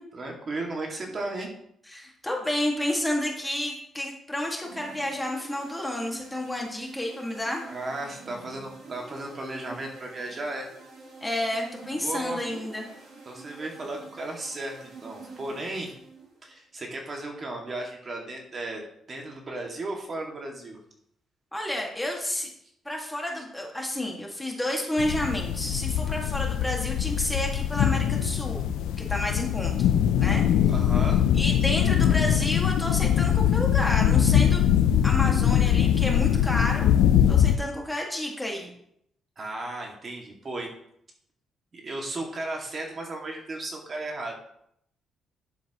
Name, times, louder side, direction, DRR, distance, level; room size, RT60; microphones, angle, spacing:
voice 1, 0.1-1.5 7.7-10.7 12.0-12.4 13.3-16.0 16.4-20.8 30.7-31.3 39.4-40.7 41.7-44.3, right 2 dB, 40° right, 0 dB, 2.1 m, -35 dB
voice 2, 1.9-7.6 11.2-12.9 21.5-22.5 22.9-28.6 29.0-29.9 30.2-30.7 31.3-34.7 35.0-36.9 37.3-38.7, left 1 dB, 10° left, 0 dB, 2.0 m, -30 dB
sound 1, 4.6-16.4, right 4 dB, 65° right, 3.6 m, -47 dB
sound 2, 25.0-37.6, left 10 dB, 90° left, 0.5 m, -22 dB
10.5 x 7.3 x 3.0 m, 0.73 s
cardioid pair, 90°, 0 cm